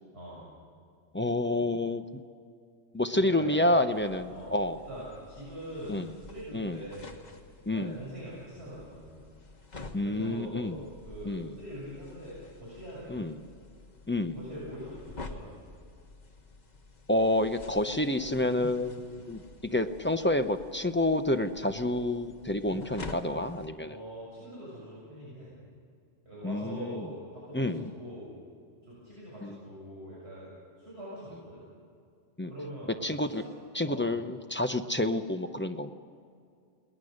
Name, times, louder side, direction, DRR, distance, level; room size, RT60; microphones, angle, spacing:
voice 1, 0.1-0.5 3.1-4.0 4.3-4.5 4.9-7.2 7.7-9.3 10.0-13.3 14.4-15.5 19.1-19.3 23.9-25.5 26.2-28.3 28.8-30.5 30.8-31.6 32.5-33.5 33.8-34.0, equal, 60° right, -7 dB, 6.9 m, -43 dB
voice 2, 1.1-2.0 2.9-4.8 5.9-6.1 6.5-6.8 7.7-7.9 9.9-10.8 11.3-11.5 13.1-13.3 14.1-14.3 17.1-19.4 19.7-24.0 26.4-27.1 27.5-27.8 29.4-29.6 32.4-32.5 33.0-33.4 33.7-35.9, left 1 dB, 10° left, 7 dB, 0.6 m, -28 dB
sound 1, 3.9-23.7, left 3 dB, 35° left, 1.5 m, -49 dB
29.5 x 19.5 x 6.6 m, 2.3 s
omnidirectional pair, 1.2 m